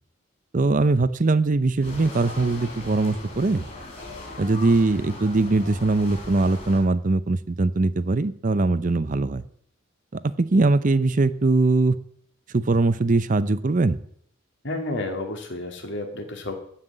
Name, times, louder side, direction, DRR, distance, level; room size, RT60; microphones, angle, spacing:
voice 1, 0.5-3.6 4.4-9.4 10.1-11.9 12.5-14.0, right 3 dB, 40° right, 14 dB, 0.6 m, -21 dB
sound 1, 1.8-6.8, left 1 dB, 35° left, 5.2 m, -39 dB
voice 2, 14.6-16.5, left 2 dB, 60° left, 4 dB, 2.3 m, -31 dB
15.0 x 5.8 x 8.0 m, 0.66 s
head